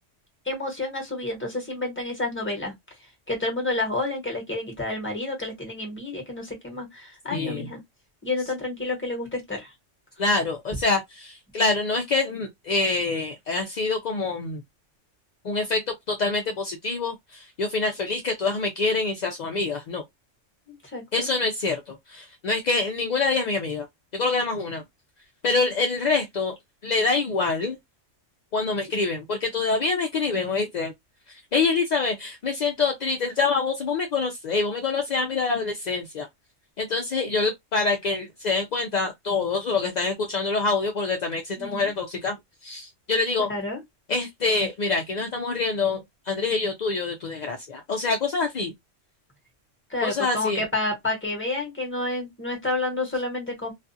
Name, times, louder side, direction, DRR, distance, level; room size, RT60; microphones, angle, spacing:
voice 1, 0.4-2.7 3.3-7.8 8.2-9.7 20.7-21.3 41.6-41.9 43.5-43.8 49.9-53.7, left 2 dB, 10° left, 1.0 m, -30 dB
voice 2, 7.3-7.7 10.2-14.6 15.4-15.8 16.1-20.0 21.1-23.9 24.1-24.8 25.4-26.5 26.8-27.8 28.5-30.9 31.5-36.3 36.8-42.3 42.6-43.5 44.1-46.0 46.3-48.7 50.0-50.6, left 3 dB, 65° left, 0.4 m, -26 dB
2.4 x 2.3 x 2.6 m
omnidirectional pair, 1.3 m